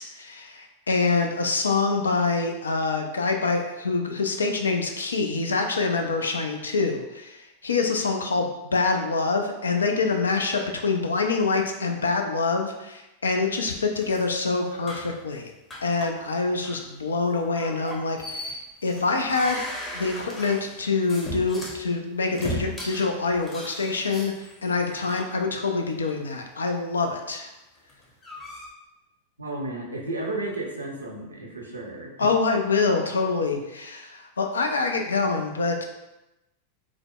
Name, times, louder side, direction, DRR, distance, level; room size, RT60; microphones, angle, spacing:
voice 1, 0.0-15.5 15.8-19.6 19.9-27.5 32.2-35.8, left 4 dB, 70° left, 4 dB, 0.4 m, -25 dB
sound 1, 13.9-15.2 15.7-16.3 16.6-16.8 17.6-21.8 22.3-25.2 25.9-26.1 27.8-28.7, left 1 dB, 20° left, 0.8 m, -37 dB
voice 2, 29.4-32.1, right 2 dB, 80° right, -1 dB, 0.6 m, -33 dB
4.8 x 2.0 x 2.3 m, 0.97 s
figure-of-eight pair, 90°, 0 cm